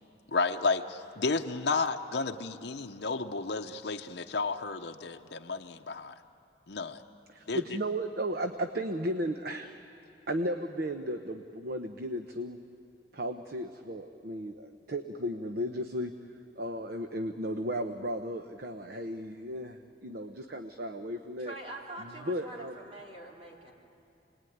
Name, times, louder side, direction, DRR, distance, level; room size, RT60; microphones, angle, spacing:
voice 1, 0.3-6.1 6.7-7.0 7.5-7.6, left 4 dB, 60° left, 4 dB, 0.8 m, -32 dB
voice 2, 7.3-9.8 10.3-12.6 13.1-16.1 16.6-21.6 22.0-22.7, equal, 55° right, 7 dB, 0.9 m, -35 dB
voice 3, 21.4-23.7, right 2 dB, 35° right, -2 dB, 3.6 m, -44 dB
28.5 x 20.0 x 9.4 m, 2.7 s
head